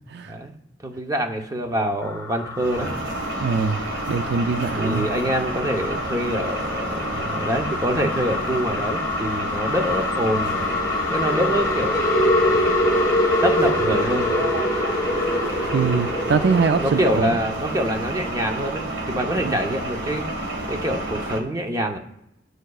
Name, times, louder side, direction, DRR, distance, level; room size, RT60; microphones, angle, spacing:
voice 1, 0.8-3.0 4.8-10.7 11.1-12.7 13.4-14.3 16.8-20.2 20.7-22.0, equal, 20° right, 4 dB, 0.8 m, -25 dB
sound 1, 2.0-17.2, left 2 dB, 20° left, 2.1 m, -25 dB
sound 2, 2.5-21.4, right 2 dB, 90° right, 1.5 m, -30 dB
voice 2, 3.4-3.8 4.1-5.1 15.7-17.3 19.4-19.6, right 5 dB, 60° right, 10 dB, 0.4 m, -22 dB
14.5 x 6.4 x 2.4 m, 0.83 s
head